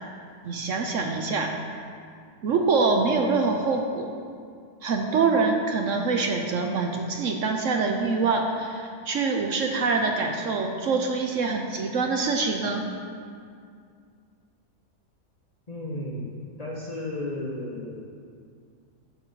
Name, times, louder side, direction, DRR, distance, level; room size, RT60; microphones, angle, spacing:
voice 1, 0.4-1.5 2.4-4.1 4.8-12.8, right 4 dB, 65° right, 3 dB, 0.9 m, -25 dB
voice 2, 15.7-18.1, left 1 dB, 35° left, -4 dB, 0.7 m, -34 dB
10.5 x 4.5 x 5.3 m, 2.3 s
omnidirectional pair, 1.7 m